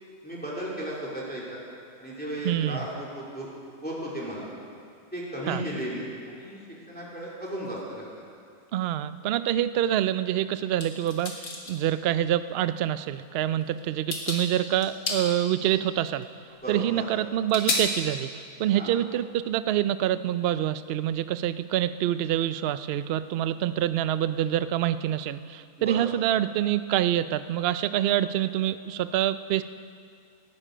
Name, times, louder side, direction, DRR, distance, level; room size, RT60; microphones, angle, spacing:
voice 1, 0.2-1.6 2.0-3.5 3.8-4.5 5.1-6.6 6.9-8.0 16.6-17.0 18.7-18.9 25.8-26.1, right 1 dB, 5° left, -5 dB, 2.7 m, -35 dB
voice 2, 2.4-2.9 5.5-5.6 8.7-11.3 11.7-16.3 16.7-29.6, right 12 dB, 85° right, 13 dB, 0.5 m, -26 dB
sound 1, 10.8-11.8 13.0-13.1 13.6-13.8 14.1-14.4 14.8-15.2 16.2-16.3 17.5-17.8, left 3 dB, 90° left, 2.3 m, -30 dB
18.0 x 12.0 x 5.0 m, 2.3 s
omnidirectional pair, 1.6 m